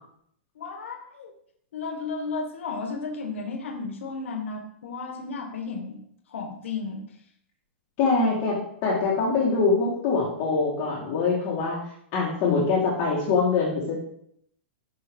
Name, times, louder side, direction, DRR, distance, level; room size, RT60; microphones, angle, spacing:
voice 1, 0.6-1.3 1.7-6.0 6.3-7.0, left 4 dB, 85° left, 4 dB, 0.8 m, -33 dB
voice 2, 8.0-11.8 12.1-14.0, left 4 dB, 35° left, -5 dB, 1.0 m, -24 dB
4.7 x 2.4 x 3.3 m, 0.69 s
hypercardioid pair, 150°, 7 cm